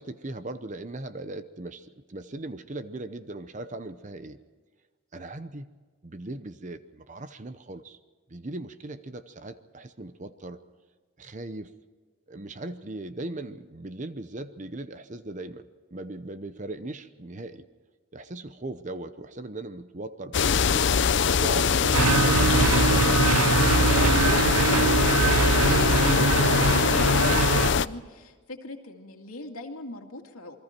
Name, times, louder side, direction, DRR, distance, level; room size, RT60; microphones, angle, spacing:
voice 1, 0.0-4.4 5.1-5.7 6.0-8.0 8.3-10.6 11.2-11.7 12.3-17.7 18.1-20.9 21.4-23.7, right 2 dB, 35° right, 11 dB, 0.8 m, -39 dB
sound 1, 20.3-27.9, left 6 dB, 55° left, 0.5 m, -23 dB
sound 2, 21.9-27.7, right 4 dB, 90° right, 0.6 m, -23 dB
voice 2, 25.1-30.6, left 2 dB, 85° left, 3 dB, 2.5 m, -40 dB
28.5 x 22.0 x 4.5 m, 1.4 s
head